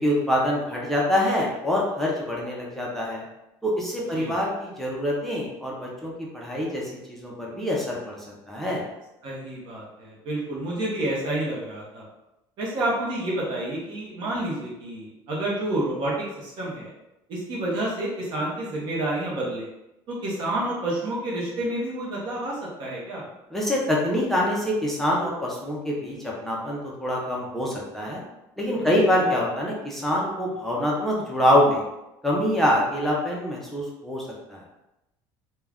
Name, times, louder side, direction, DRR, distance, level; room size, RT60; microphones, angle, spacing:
voice 1, 0.0-3.2 3.6-6.8 7.1-8.8 23.5-28.2 28.6-31.8 32.2-34.2 34.5-34.6, left 1 dB, 5° left, -4 dB, 0.5 m, -25 dB
voice 2, 9.2-12.1 12.6-16.9 17.3-19.7 20.1-23.3 29.2-29.3, right 1 dB, 50° right, -4 dB, 0.7 m, -29 dB
2.4 x 2.2 x 3.3 m, 0.90 s
cardioid pair, 155°, 10 cm